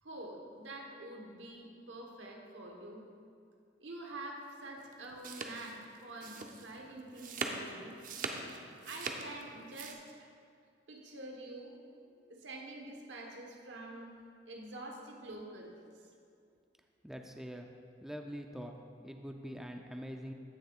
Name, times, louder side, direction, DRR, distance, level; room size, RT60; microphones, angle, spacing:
voice 1, 0.0-3.1 3.8-8.0 8.8-10.3 10.9-11.8 12.0-14.1 14.5-15.7, right 1 dB, 90° right, 1 dB, 1.2 m, -47 dB
sound 1, 4.8-9.9, right 4 dB, 50° right, 0.6 m, -41 dB
voice 2, 17.0-17.7 18.0-18.7 19.0-20.3, equal, 5° right, 3 dB, 0.4 m, -44 dB
15.5 x 6.4 x 2.4 m, 2.3 s
head